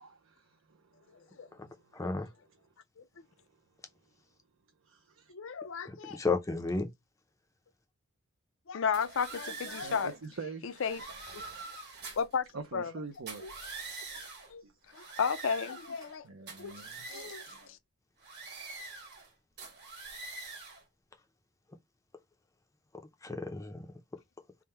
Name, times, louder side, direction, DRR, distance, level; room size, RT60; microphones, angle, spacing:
voice 1, 0.0-2.0 3.5-3.6 4.8-5.3 9.7-10.8 11.4-11.6 12.5-13.7 14.6-14.8 16.2-17.4, right 4 dB, 65° right, 0.5 m, -46 dB
voice 2, 1.9-2.3 5.8-6.9 23.2-23.9, left 3 dB, 15° left, 0.5 m, -33 dB
voice 3, 5.3-6.2 8.7-10.1 10.6-11.0 11.3-11.4 12.2-12.5 12.7-12.9 13.4-13.5 14.1-14.2 14.5-14.6 14.9-16.3 16.6-16.7 17.1-17.4, left 6 dB, 65° left, 0.5 m, -33 dB
sound 1, 8.9-10.2 10.7-12.3 13.1-14.5 14.9-16.2 16.5-17.7 18.2-19.3 19.6-20.8, right 3 dB, 50° right, 1.3 m, -45 dB
3.6 x 2.1 x 4.3 m
head